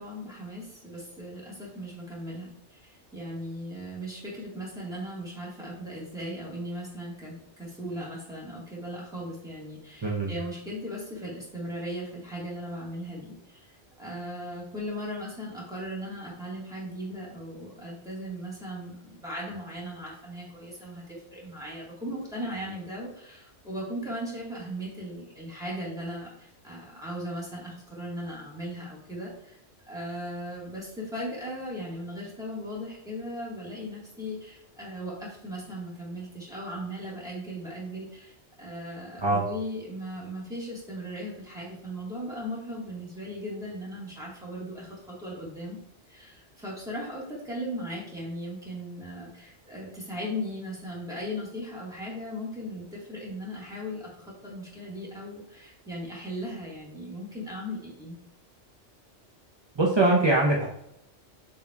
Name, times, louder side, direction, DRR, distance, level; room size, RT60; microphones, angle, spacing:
voice 1, 0.0-29.6 29.9-45.8 46.1-58.2, equal, 5° right, -6 dB, 1.5 m, -38 dB
voice 2, 59.8-60.6, right 2 dB, 35° right, -3 dB, 0.5 m, -22 dB
7.0 x 2.8 x 2.3 m, 0.76 s
omnidirectional pair, 1.2 m